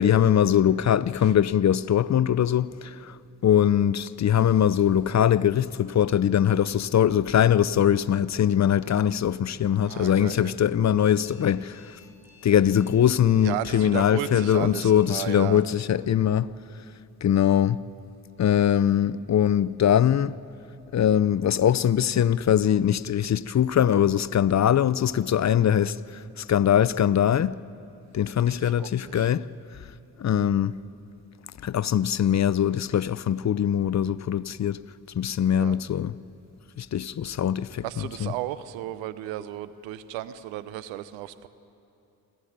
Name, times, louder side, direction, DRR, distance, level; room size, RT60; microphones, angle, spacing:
voice 1, 0.0-3.2 3.4-11.8 12.4-16.5 17.2-17.8 18.4-20.4 20.9-27.6 28.1-29.5 30.2-30.8 31.6-34.8 35.2-36.2 36.8-38.3, left 9 dB, 40° left, 0.6 m, -22 dB
voice 2, 9.9-10.5 13.4-15.6 28.5-29.3 35.5-35.8 37.8-41.5, right 13 dB, 85° right, 0.8 m, -34 dB
Alarm, 11.2-15.1, left 5 dB, 5° right, 7.3 m, -55 dB
27.5 x 12.0 x 9.5 m
hypercardioid pair, 45°, 44 cm